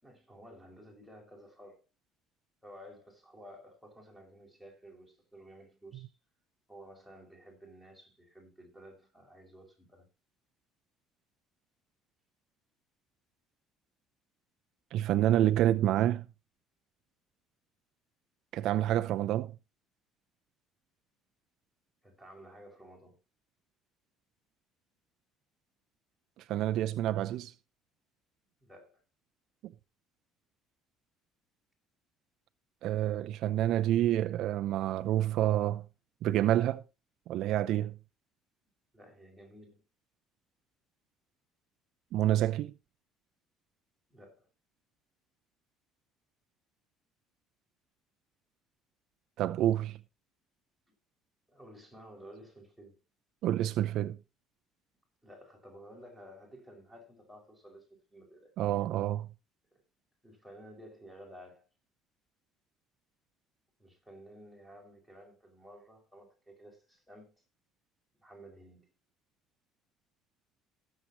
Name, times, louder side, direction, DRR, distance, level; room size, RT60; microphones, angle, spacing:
voice 1, 0.0-1.8 2.6-6.1 6.7-10.1 22.0-23.2 28.6-29.0 38.9-39.8 44.1-44.5 51.5-53.0 55.2-58.5 59.7-59.8 60.2-61.7 63.8-67.3 68.2-68.9, equal, 5° left, 5.5 m, -53 dB
voice 2, 14.9-16.2 18.5-19.5 26.5-27.5 29.6-29.7 32.8-35.8 36.2-36.8 37.3-37.9 42.1-42.7 49.4-50.0 53.4-54.2 58.6-59.3, right 12 dB, 55° right, 0.6 m, -28 dB
19.5 x 7.6 x 3.1 m
cardioid pair, 155°, 0 cm